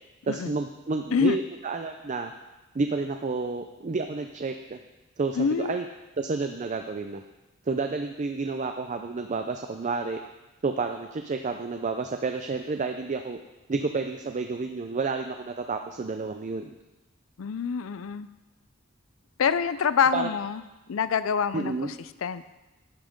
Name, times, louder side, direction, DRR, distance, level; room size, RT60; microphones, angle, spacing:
voice 1, 0.2-2.3 2.7-4.8 5.2-5.8 6.2-7.2 7.7-10.2 10.6-13.4 13.7-16.7 20.1-20.3 21.5-21.9, right 4 dB, 35° right, 6 dB, 0.5 m, -30 dB
voice 2, 5.4-5.8 17.4-18.3 19.4-20.6 20.9-21.9 22.2-22.4, left 6 dB, 75° left, 14 dB, 0.4 m, -26 dB
11.0 x 5.8 x 5.2 m, 1.1 s
head